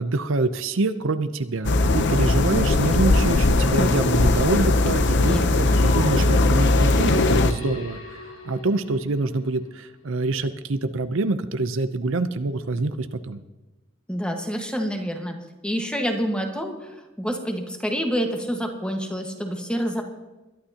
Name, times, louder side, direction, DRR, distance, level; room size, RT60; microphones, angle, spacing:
voice 1, 0.0-8.2 8.4-13.4, right 3 dB, 65° right, 11 dB, 0.6 m, -26 dB
sound 1, 1.6-7.5, left 2 dB, 60° left, 0.7 m, -19 dB
voice 2, 5.2-5.7 14.1-15.3 15.6-20.0, equal, 5° left, 3 dB, 1.5 m, -27 dB
sound 2, 5.6-9.6, left 1 dB, 90° left, 2.1 m, -33 dB
21.5 x 11.5 x 2.9 m, 1.1 s
head